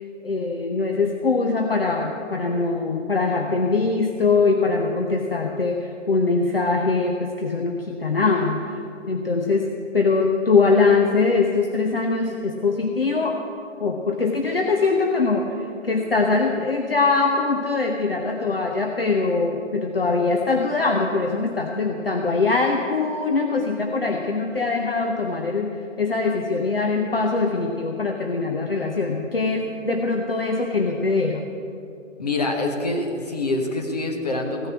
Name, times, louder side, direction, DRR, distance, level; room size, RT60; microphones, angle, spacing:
voice 1, 0.2-8.8 9.1-13.4 13.8-31.4, left 4 dB, 45° left, 2 dB, 0.9 m, -22 dB
voice 2, 32.2-34.7, left 2 dB, 30° left, 2 dB, 1.3 m, -25 dB
15.5 x 6.8 x 8.3 m, 2.7 s
figure-of-eight pair, 165°, 39 cm